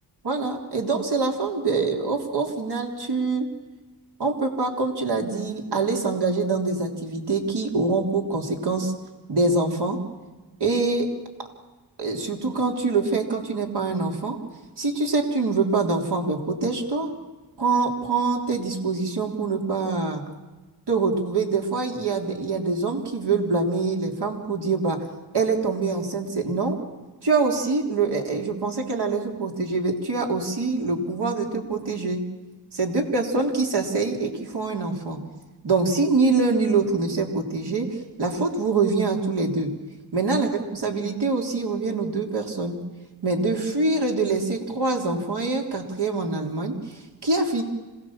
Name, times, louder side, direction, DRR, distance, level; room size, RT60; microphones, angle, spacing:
voice 1, 0.2-3.5 4.2-8.9 9.3-10.0 10.6-11.1 12.0-14.4 14.8-17.1 17.6-20.2 20.9-25.0 25.3-26.8 27.2-32.2 32.7-35.2 35.6-39.7 40.1-40.5 40.8-42.8 43.2-47.6, right 3 dB, 65° right, 2 dB, 3.8 m, -24 dB
26.5 x 18.5 x 7.5 m, 1.2 s
cardioid pair, 85°, 43 cm